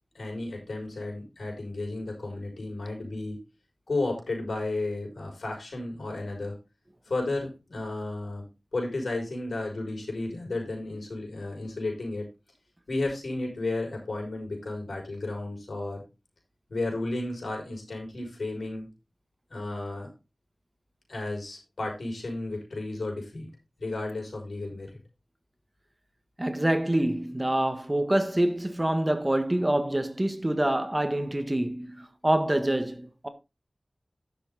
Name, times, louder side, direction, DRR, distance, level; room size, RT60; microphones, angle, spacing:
voice 1, 0.1-3.4 3.9-6.6 7.1-8.4 8.7-12.3 12.9-16.0 16.7-18.9 19.5-20.1 21.1-23.5 23.8-25.0, left 2 dB, 90° left, 5.9 m, -33 dB
voice 2, 26.4-33.3, right 1 dB, 20° right, 1.5 m, -26 dB
11.0 x 7.3 x 4.0 m
wide cardioid pair, 60°, 0 cm